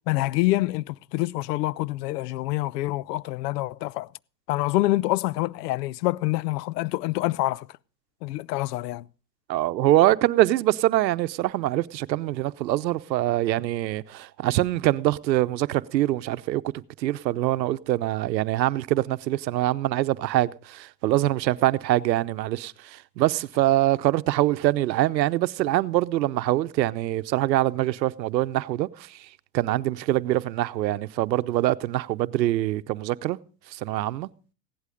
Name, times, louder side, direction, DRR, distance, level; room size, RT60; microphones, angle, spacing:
voice 1, 0.1-4.1 4.5-7.7 8.2-9.0, left 18 dB, 70° left, 0.6 m, -26 dB
voice 2, 9.5-16.7 17.0-29.3 29.5-33.4 33.7-34.3, right 15 dB, 85° right, 0.8 m, -24 dB
16.5 x 11.5 x 5.1 m
hypercardioid pair, 110°, 50 cm